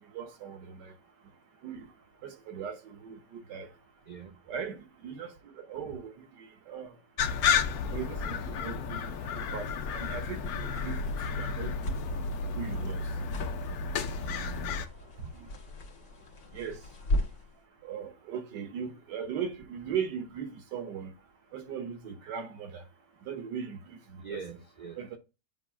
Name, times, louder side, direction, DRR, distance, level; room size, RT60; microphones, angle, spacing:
voice 1, 0.1-0.9 1.6-1.9 2.2-3.7 4.5-5.3 5.7-6.9 7.9-11.0 11.3-12.0 12.6-13.0 15.4-15.5 16.5-16.8 17.8-21.1 21.5-22.8 23.3-24.4 25.0-25.2, right 7 dB, 85° right, 1.6 m, -38 dB
voice 2, 4.1-4.4 14.2-14.7 24.2-25.2, right 6 dB, 55° right, 0.5 m, -43 dB
sound 1, 7.2-14.9, left 5 dB, 70° left, 1.1 m, -32 dB
sound 2, 9.5-17.6, left 1 dB, 85° left, 1.8 m, -38 dB
7.4 x 2.5 x 5.6 m
omnidirectional pair, 1.8 m